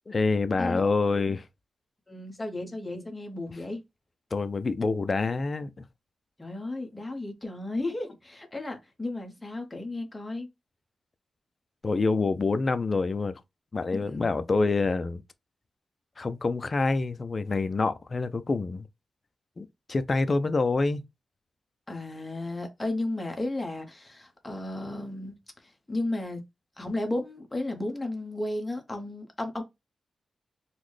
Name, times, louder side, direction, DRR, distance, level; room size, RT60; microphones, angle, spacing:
voice 1, 0.1-1.4 4.3-5.8 11.8-13.4 13.7-15.2 16.2-18.9 19.6-21.0, left 3 dB, 30° left, 0.3 m, -26 dB
voice 2, 0.6-1.2 2.1-3.8 6.4-10.5 14.0-14.4 21.9-25.4 25.6-26.4 26.8-29.6, left 2 dB, 15° left, 0.8 m, -34 dB
3.9 x 2.1 x 3.1 m
wide cardioid pair, 165°, 0 cm